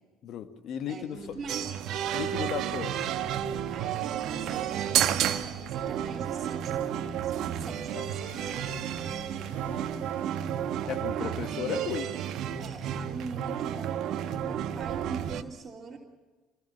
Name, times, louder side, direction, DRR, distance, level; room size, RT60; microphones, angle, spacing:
voice 1, 0.2-1.2 2.1-3.0 7.9-8.1 10.9-12.1 12.5-12.7, left 8 dB, 55° left, 9 dB, 1.8 m, -35 dB
voice 2, 0.9-1.7 3.7-9.5 11.1-11.6 12.6-16.0, right 4 dB, 35° right, -2 dB, 3.1 m, -44 dB
sound 1, 1.1-11.4, left 3 dB, 90° left, 5.6 m, -51 dB
sound 2, 1.5-15.4, right 10 dB, 60° right, 1.3 m, -31 dB
25.0 x 20.0 x 7.4 m, 1.2 s
hypercardioid pair, 60°, 0 cm